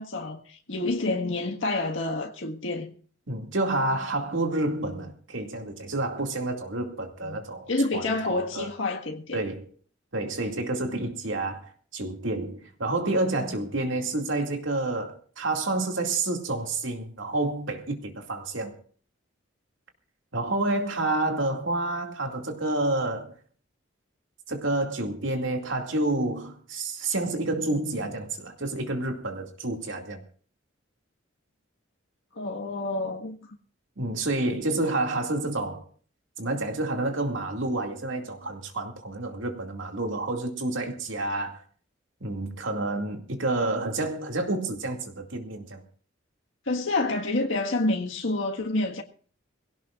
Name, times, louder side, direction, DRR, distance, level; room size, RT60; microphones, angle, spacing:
voice 1, 0.0-2.9 7.2-7.4 7.7-9.4 32.3-33.5 46.7-49.0, left 2 dB, 75° left, 1.7 m, -28 dB
voice 2, 3.3-8.7 9.3-9.7 10.1-18.8 20.3-23.3 24.5-30.2 34.0-35.8 36.4-41.6 42.2-45.8, right 2 dB, 75° right, 2.4 m, -29 dB
21.5 x 17.0 x 2.5 m
head